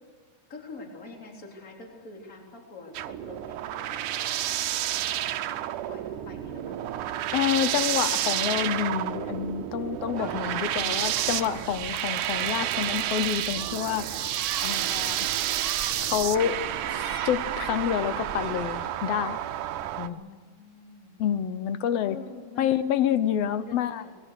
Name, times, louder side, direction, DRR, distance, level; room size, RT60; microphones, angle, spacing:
voice 1, 0.5-4.5 5.2-7.0 20.0-21.1 22.0-22.7 23.5-24.1, left 3 dB, 25° left, 0 dB, 3.9 m, -45 dB
sound 1, 2.9-20.1, right 13 dB, 85° right, 2.3 m, -30 dB
voice 2, 7.3-14.3 14.6-15.3 16.0-16.6 16.9-19.4 20.0-20.2 21.2-22.2 22.6-24.0, left 10 dB, 70° left, 13 dB, 1.6 m, -28 dB
sound 2, 10.2-18.9, right 4 dB, 35° right, 1.3 m, -41 dB
27.0 x 20.5 x 6.5 m, 1.4 s
omnidirectional pair, 3.5 m